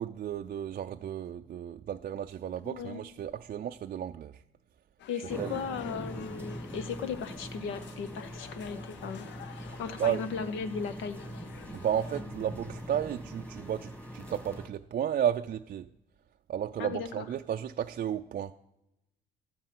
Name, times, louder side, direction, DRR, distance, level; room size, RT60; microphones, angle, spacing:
voice 1, 0.0-4.4 5.2-5.6 9.7-10.2 11.7-15.9 16.5-18.5, right 10 dB, 45° right, 0.4 m, -33 dB
voice 2, 2.6-3.0 5.1-9.3 9.8-11.2 16.8-17.2, left 6 dB, 85° left, 0.9 m, -36 dB
sound 1, 5.0-12.2, left 10 dB, 70° left, 0.5 m, -51 dB
sound 2, 5.3-14.7, equal, 5° left, 1.7 m, -43 dB
12.0 x 5.5 x 7.6 m
cardioid pair, 90°, 20 cm